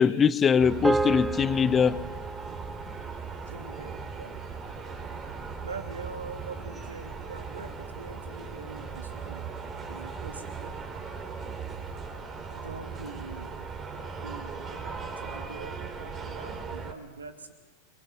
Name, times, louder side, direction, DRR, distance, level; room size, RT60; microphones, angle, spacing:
voice 1, 0.0-2.0, left 7 dB, 20° left, 0.9 m, -22 dB
sound 1, 0.6-16.9, right 5 dB, 25° right, 4.1 m, -38 dB
sound 2, 0.8-5.4, right 3 dB, 5° right, 0.9 m, -34 dB
voice 2, 3.5-4.4 5.6-9.5 9.9-10.8 12.6-13.6 14.2-17.5, right 4 dB, 75° right, 2.9 m, -43 dB
28.0 x 24.0 x 7.8 m
figure-of-eight pair, 90°, 0 cm